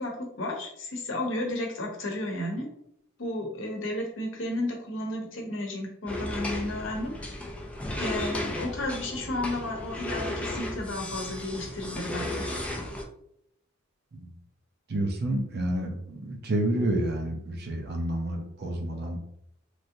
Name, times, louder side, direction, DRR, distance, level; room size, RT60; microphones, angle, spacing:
voice 1, 0.0-2.7 3.2-7.3 8.0-12.5, left 1 dB, 65° left, 0 dB, 0.8 m, -33 dB
sound 1, 6.1-13.0, left 1 dB, 5° left, 0.3 m, -34 dB
voice 2, 14.9-19.2, right 1 dB, 55° right, 2 dB, 0.6 m, -29 dB
3.1 x 2.6 x 2.6 m, 0.73 s
head